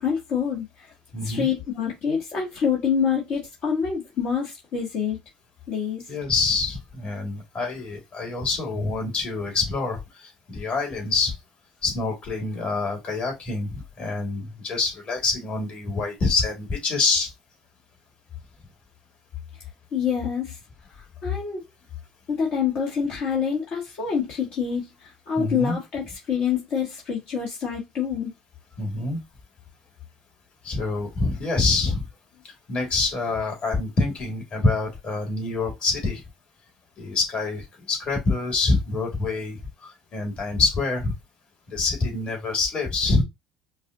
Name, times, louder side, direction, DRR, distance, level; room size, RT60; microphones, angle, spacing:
voice 1, 0.0-0.9 1.2-5.2 5.7-6.0 19.9-20.6 20.9-21.6 22.3-28.3, left 7 dB, 60° left, 1.7 m, -26 dB
voice 2, 1.1-1.5 6.1-11.3 11.8-17.3 25.4-25.8 28.8-29.2 30.6-32.1 32.7-36.2 37.0-41.1 41.7-43.2, left 3 dB, 45° left, 2.2 m, -26 dB
5.2 x 2.5 x 2.7 m
hypercardioid pair, 70°, 3 cm